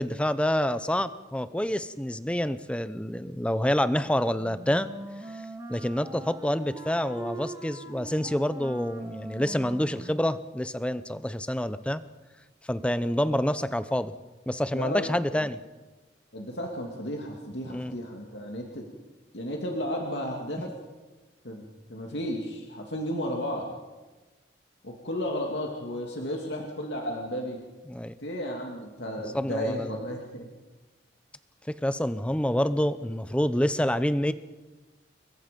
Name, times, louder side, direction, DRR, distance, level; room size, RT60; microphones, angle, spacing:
voice 1, 0.0-4.9 5.3-5.4 5.7-12.0 12.7-14.1 14.5-15.6 17.7-18.0 27.9-28.1 29.3-30.0 31.7-34.3, equal, 5° left, 13 dB, 0.7 m, -27 dB
Wind instrument woodwind instrument, 4.4-10.4, right 2 dB, 20° right, 2.1 m, -42 dB
voice 2, 14.7-15.4 16.3-18.8 19.3-20.7 21.4-23.7 24.8-27.6 28.2-30.5, equal, 70° left, 0 dB, 2.5 m, -33 dB
28.5 x 22.5 x 5.3 m, 1.2 s
head